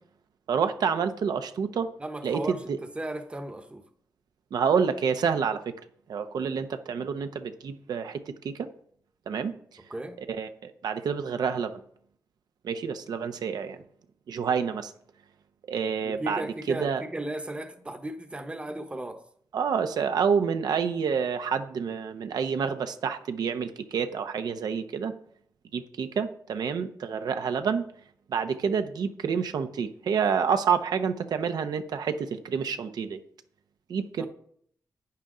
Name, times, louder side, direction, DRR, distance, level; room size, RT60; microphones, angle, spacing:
voice 1, 0.5-1.9 2.2-2.8 4.5-5.7 6.1-8.7 9.3-9.5 10.3-11.8 12.6-13.8 14.3-14.9 15.7-16.4 16.7-17.0 19.5-25.1 25.7-27.9 28.3-33.2 33.9-34.3, right 6 dB, 85° right, 0.7 m, -28 dB
voice 2, 2.0-3.8 9.9-10.2 16.0-19.2 34.2-34.3, right 1 dB, 15° right, 0.9 m, -36 dB
11.5 x 9.0 x 3.8 m
wide cardioid pair, 145°, 7 cm